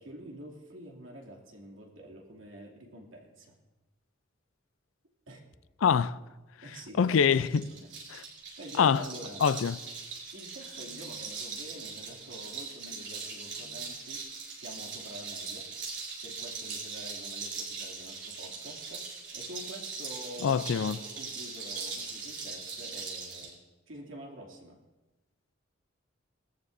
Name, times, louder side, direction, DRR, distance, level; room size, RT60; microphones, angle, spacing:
voice 1, 0.0-3.6 5.3-5.4 6.6-7.9 8.6-9.5 10.3-14.2 14.5-15.7 16.2-19.1 19.3-23.6 23.9-24.8, equal, 85° right, 2.6 m, -47 dB
voice 2, 5.8-6.2 7.0-7.7 8.1-8.2 8.8-9.0 9.4-9.8 20.4-21.0, left 7 dB, 85° left, 0.4 m, -24 dB
sound 1, 7.1-23.5, right 4 dB, 65° right, 5.2 m, -40 dB
19.5 x 14.0 x 2.6 m
head